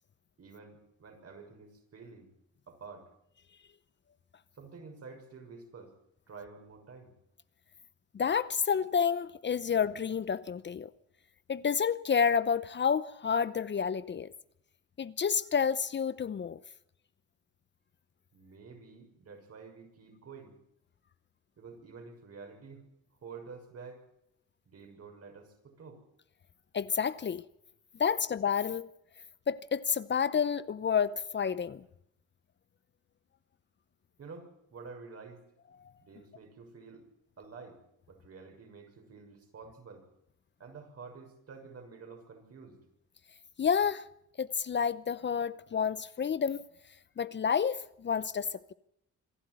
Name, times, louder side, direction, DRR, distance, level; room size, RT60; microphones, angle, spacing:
voice 1, 0.4-2.3 2.7-3.1 4.5-5.9 6.3-7.1 18.3-20.5 21.6-22.8 23.2-24.1 24.7-26.0 34.2-35.5 36.0-37.1 37.4-37.8 38.1-40.1 40.6-42.8, right 4 dB, 55° right, 6.4 m, -49 dB
voice 2, 8.1-10.9 11.5-14.3 15.0-16.6 26.7-27.4 28.0-28.9 29.5-31.8 43.6-44.0 44.4-46.6 47.2-48.7, left 6 dB, 40° left, 0.7 m, -29 dB
26.0 x 12.0 x 9.4 m
cardioid pair, 90°, 30 cm